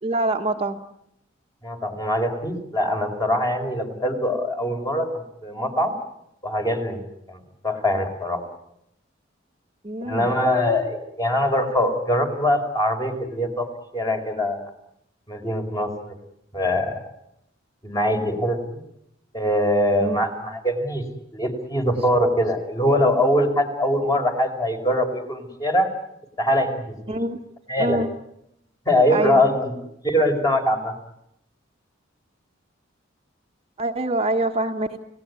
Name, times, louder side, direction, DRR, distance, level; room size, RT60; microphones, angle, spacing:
voice 1, 0.0-0.8 9.8-10.3 20.0-20.2 27.1-27.4 27.8-28.1 29.1-29.4 33.8-35.0, right 2 dB, 30° right, 4 dB, 1.3 m, -24 dB
voice 2, 1.6-5.1 5.4-5.9 6.4-7.4 7.6-8.4 10.0-13.7 13.9-14.6 15.3-16.1 16.5-17.0 17.8-18.8 19.3-21.0 21.3-25.9 26.4-27.2 27.7-28.0 28.8-29.7 30.0-30.9, left 1 dB, 20° left, 5 dB, 4.8 m, -22 dB
30.0 x 18.0 x 9.7 m, 0.79 s
head